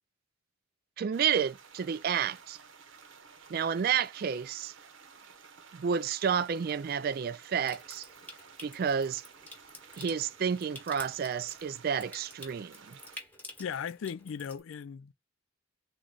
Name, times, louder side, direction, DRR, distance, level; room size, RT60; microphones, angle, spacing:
voice 1, 1.0-2.6 3.5-4.7 5.7-8.1 8.6-9.2 10.0-13.0, right 7 dB, 45° right, 0.3 m, -30 dB
sound 1, 1.1-13.2, right 6 dB, 75° right, 0.9 m, -54 dB
Water tap faucet / Sink (filling or washing) / Trickle dribble, 7.6-14.6, left 2 dB, 10° left, 1.0 m, -50 dB
voice 2, 13.6-15.1, left 7 dB, 75° left, 0.3 m, -37 dB
3.8 x 3.0 x 2.3 m
head